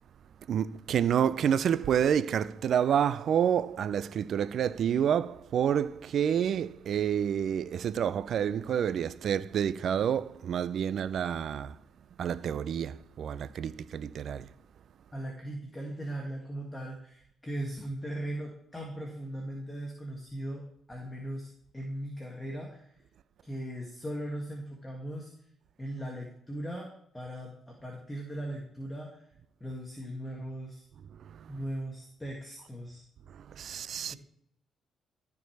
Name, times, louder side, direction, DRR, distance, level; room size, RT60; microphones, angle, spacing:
voice 1, 0.5-11.8 12.2-14.5 31.2-31.5 33.6-34.1, right 8 dB, 65° right, 0.4 m, -28 dB
voice 2, 15.1-22.9 23.4-25.3 25.8-29.3 29.6-30.9 31.5-33.0, right 1 dB, 10° left, 1.8 m, -39 dB
14.0 x 4.7 x 4.6 m
cardioid pair, 90°, 0 cm